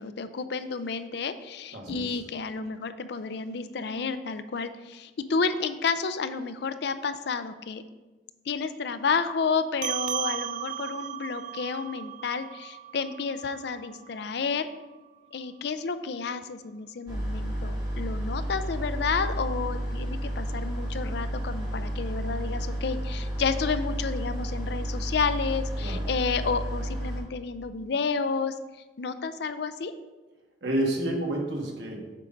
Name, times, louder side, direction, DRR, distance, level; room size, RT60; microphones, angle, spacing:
voice 1, 0.0-7.8 8.5-14.7 15.3-28.5 29.0-29.9, left 5 dB, 60° left, 11 dB, 0.4 m, -31 dB
voice 2, 1.7-2.2 25.8-26.0 30.6-32.0, right 1 dB, 65° right, -1 dB, 1.4 m, -29 dB
sound 1, 9.8-14.6, right 11 dB, 40° right, 0.3 m, -36 dB
sound 2, 17.1-27.2, equal, 20° right, 1.6 m, -31 dB
7.4 x 3.9 x 5.1 m, 1.2 s
head